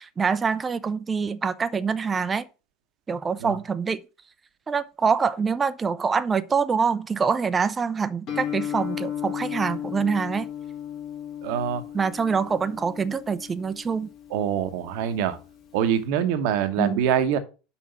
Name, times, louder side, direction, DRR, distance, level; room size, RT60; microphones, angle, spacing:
voice 1, 0.0-2.5 3.1-4.0 4.7-10.5 11.9-14.1 16.8-17.0, right 5 dB, 25° right, 0.6 m, -25 dB
Guitar, 8.3-16.0, left 10 dB, 50° left, 2.4 m, -35 dB
voice 2, 11.4-11.8 14.3-15.4 15.7-17.4, right 9 dB, 60° right, 1.0 m, -24 dB
5.8 x 4.5 x 5.7 m
hypercardioid pair, 80°, 0 cm